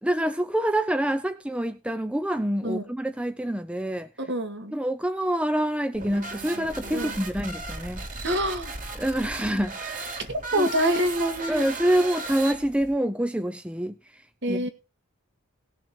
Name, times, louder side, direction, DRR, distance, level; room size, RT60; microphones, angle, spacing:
voice 1, 0.0-4.1 4.7-8.1 9.0-10.2 10.6-10.7 11.5-14.0 14.5-14.7, right 1 dB, 5° right, 0.6 m, -26 dB
voice 2, 4.2-4.7 6.9-7.1 8.2-8.7 10.3-11.6 14.4-14.7, right 1 dB, 55° right, 2.1 m, -26 dB
sound 1, 5.9-12.9, right 3 dB, 40° right, 2.7 m, -36 dB
18.0 x 6.6 x 4.4 m
head